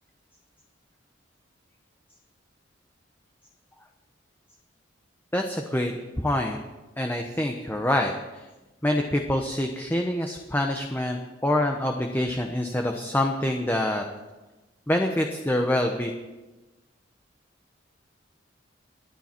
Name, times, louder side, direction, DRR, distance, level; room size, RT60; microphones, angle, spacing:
voice 1, 5.3-6.6 7.0-8.5 8.8-14.0 14.9-16.1, left 1 dB, 10° left, 3 dB, 1.0 m, -26 dB
29.0 x 10.0 x 4.5 m, 1.1 s
head